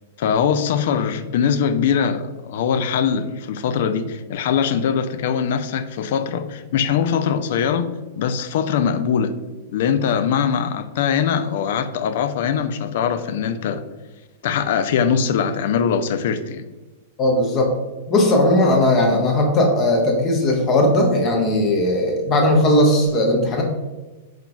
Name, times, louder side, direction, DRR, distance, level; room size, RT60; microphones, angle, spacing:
voice 1, 0.2-7.9 8.2-9.3 9.7-13.8 14.4-16.7, left 7 dB, 55° left, 9 dB, 0.4 m, -22 dB
voice 2, 17.2-17.7 18.1-23.6, left 1 dB, 30° left, 1 dB, 0.9 m, -17 dB
4.6 x 3.7 x 2.3 m, 1.2 s
figure-of-eight pair, 100°, 0 cm